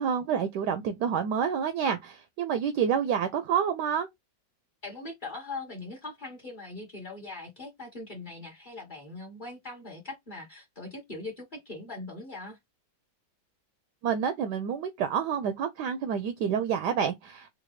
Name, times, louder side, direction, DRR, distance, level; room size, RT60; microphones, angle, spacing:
voice 1, 0.0-4.1 14.0-17.5, right 7 dB, 75° right, 1.0 m, -28 dB
voice 2, 4.8-12.6, left 2 dB, 30° left, 1.0 m, -41 dB
4.0 x 2.2 x 3.0 m
omnidirectional pair, 2.1 m